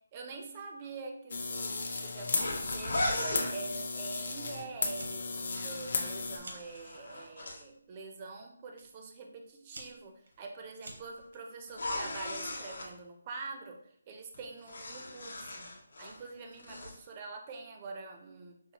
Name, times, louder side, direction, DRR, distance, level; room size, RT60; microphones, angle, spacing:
voice 1, 0.1-15.7 16.0-18.7, right 4 dB, 20° right, 3 dB, 0.4 m, -45 dB
sound 1, 1.3-6.4, left 3 dB, 45° left, 0.5 m, -35 dB
sound 2, 2.3-3.5 5.2-7.6 11.7-12.9 14.3-16.2 16.5-17.0, left 1 dB, 65° left, 0.8 m, -37 dB
Fire, 3.2-3.7 4.1-4.5 4.8-5.2 5.6-6.8 7.6-7.9 8.8-8.9 9.4-11.4, right 2 dB, 70° right, 0.8 m, -49 dB
5.3 x 2.2 x 2.8 m, 0.65 s
hypercardioid pair, 175°, 0 cm